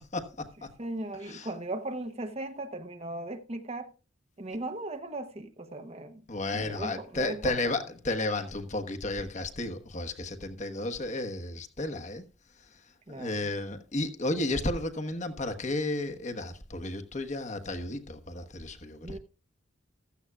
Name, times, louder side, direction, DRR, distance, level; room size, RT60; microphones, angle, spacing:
voice 1, 0.1-0.7 1.2-1.5 6.3-12.2 13.1-19.2, left 2 dB, 40° left, 1.2 m, -33 dB
voice 2, 0.8-3.9 4.4-6.2 6.5-7.6 13.1-13.5 19.0-19.2, right 2 dB, 35° right, 0.9 m, -37 dB
15.5 x 13.5 x 2.4 m
head